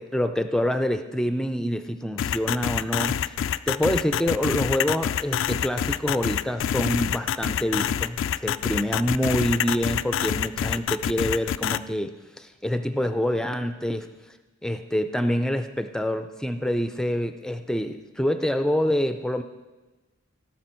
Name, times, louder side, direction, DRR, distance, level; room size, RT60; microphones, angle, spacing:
voice 1, 0.0-3.2 3.7-14.1 14.6-19.4, equal, 5° left, 8 dB, 0.4 m, -26 dB
sound 1, 2.2-11.8, left 9 dB, 70° left, 0.3 m, -26 dB
16.5 x 6.0 x 4.5 m, 1.2 s
head